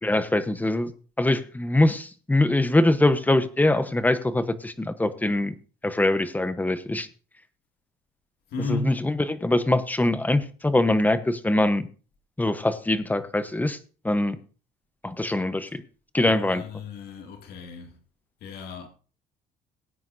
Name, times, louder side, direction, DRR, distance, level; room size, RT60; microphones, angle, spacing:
voice 1, 0.0-5.5 5.8-7.1 8.7-11.9 12.4-13.8 14.0-14.4 15.0-15.8 16.1-16.6, left 1 dB, 10° left, 1.0 m, -23 dB
voice 2, 8.5-9.0 16.2-18.0 18.4-18.9, left 3 dB, 70° left, 2.3 m, -34 dB
18.5 x 9.3 x 2.7 m
cardioid pair, 110°, 17 cm